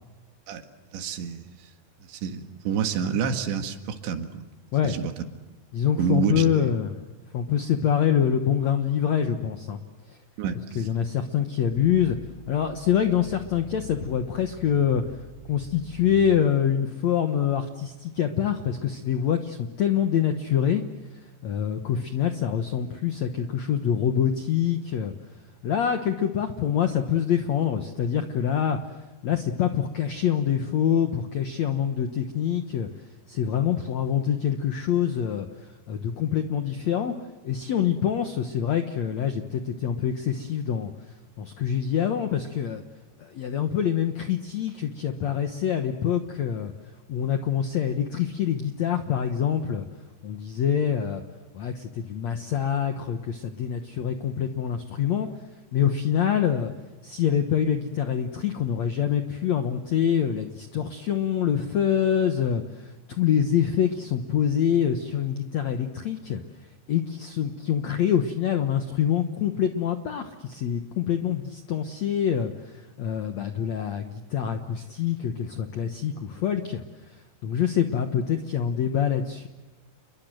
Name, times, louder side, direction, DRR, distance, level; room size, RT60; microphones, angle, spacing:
voice 1, 0.9-1.7 2.0-4.5 4.8-5.1 6.0-6.7 10.4-10.9, right 7 dB, 85° right, 6 dB, 4.1 m, -28 dB
voice 2, 5.7-7.0 7.3-9.8 10.1-10.2 10.7-12.2 12.5-15.0 15.5-20.8 21.4-25.1 25.6-28.8 29.2-32.9 33.3-37.1 37.4-40.9 41.4-42.8 43.2-46.7 47.1-49.9 50.2-51.2 51.5-55.3 55.7-56.7 57.0-66.4 66.9-79.5, left 9 dB, 80° left, 7 dB, 1.6 m, -25 dB
Growling, 11.6-16.5, left 3 dB, 50° left, 6.8 m, -45 dB
30.0 x 22.5 x 7.8 m, 1.2 s
omnidirectional pair, 5.0 m